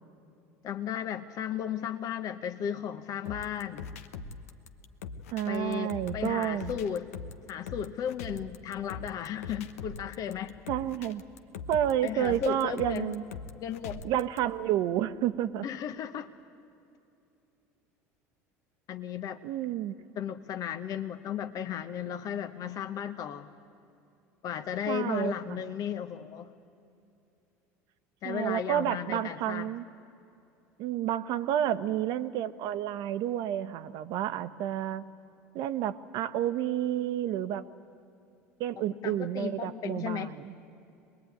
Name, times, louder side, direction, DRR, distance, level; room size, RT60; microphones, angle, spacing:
voice 1, 0.6-3.9 5.5-7.1 7.5-10.6 12.0-13.1 13.6-14.0 15.6-16.3 18.9-19.4 20.2-23.5 24.4-26.5 28.2-29.7 38.9-40.4, left 9 dB, 50° left, 8 dB, 1.0 m, -35 dB
sound 1, 3.3-14.4, left 5 dB, 85° left, 1.0 m, -42 dB
voice 2, 5.3-6.7 10.7-11.2 11.7-13.2 14.0-15.6 19.4-19.9 24.9-25.6 28.2-29.8 30.8-35.0 35.5-37.6 38.6-40.5, right 11 dB, 65° right, 12 dB, 0.9 m, -30 dB
23.5 x 20.5 x 9.4 m, 2.7 s
hypercardioid pair, 80°, 8 cm